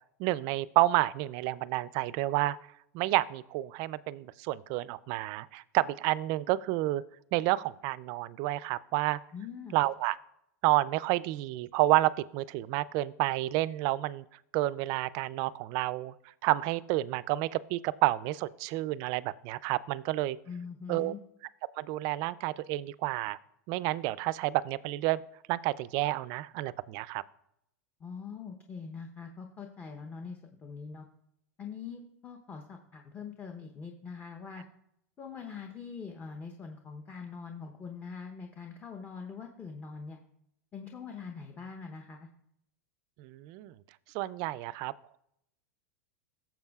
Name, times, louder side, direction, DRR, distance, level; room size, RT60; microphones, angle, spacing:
voice 1, 0.2-2.6 2.9-7.0 7.3-9.2 9.7-10.2 10.6-14.2 14.5-16.1 16.4-20.4 20.9-21.2 21.8-23.4 23.7-25.2 25.5-27.2 43.2-43.8 44.1-44.9, right 17 dB, 45° right, 18 dB, 0.4 m, -30 dB
voice 2, 9.3-9.8 20.5-21.2 28.0-31.0 31.6-34.6 35.2-40.2 40.7-42.3, left 5 dB, 20° left, 4 dB, 0.8 m, -43 dB
15.0 x 7.1 x 2.4 m, 0.77 s
supercardioid pair, 135°, 9 cm